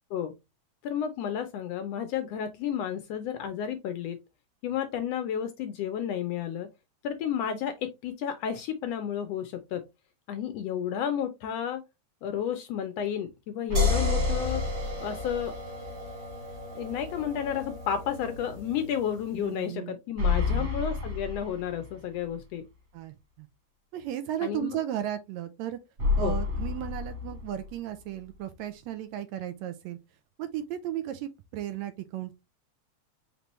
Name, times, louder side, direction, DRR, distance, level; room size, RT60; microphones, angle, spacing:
voice 1, 0.8-4.2 4.6-6.7 7.0-9.9 10.3-11.8 12.2-14.6 15.0-15.5 16.7-22.7 24.4-24.8 26.2-26.3, left 9 dB, 75° left, 1.5 m, -32 dB
sound 1, 13.7-19.6, equal, 30° right, 1.9 m, -38 dB
sound 2, 13.7-15.7 16.1-16.2 20.2-22.2 26.0-28.0, left 4 dB, 50° right, 1.6 m, -29 dB
voice 2, 19.3-20.0 20.3-20.7 22.9-23.5 23.9-25.8 26.2-30.0 30.4-32.3, right 11 dB, 80° right, 1.8 m, -35 dB
5.2 x 3.3 x 3.0 m
omnidirectional pair, 3.3 m